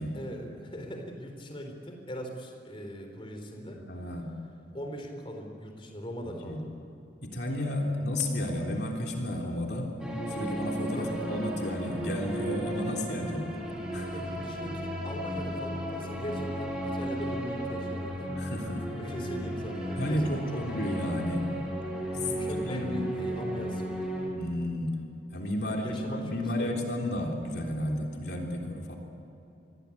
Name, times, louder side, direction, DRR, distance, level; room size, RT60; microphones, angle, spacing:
voice 1, 0.1-3.8 4.7-6.7 7.8-7.9 10.9-11.2 14.1-18.4 19.0-20.6 22.1-24.1 25.6-26.7, equal, 30° left, 4 dB, 3.8 m, -40 dB
voice 2, 3.9-4.3 6.2-6.6 7.2-9.9 10.3-13.5 13.9-14.2 18.4-18.9 20.0-21.5 22.6-22.9 24.3-25.0 25.3-29.0, left 1 dB, 60° left, 1 dB, 3.5 m, -32 dB
sound 1, 10.0-24.3, equal, 5° right, 5.3 m, -34 dB
28.5 x 22.5 x 8.6 m, 2.9 s
head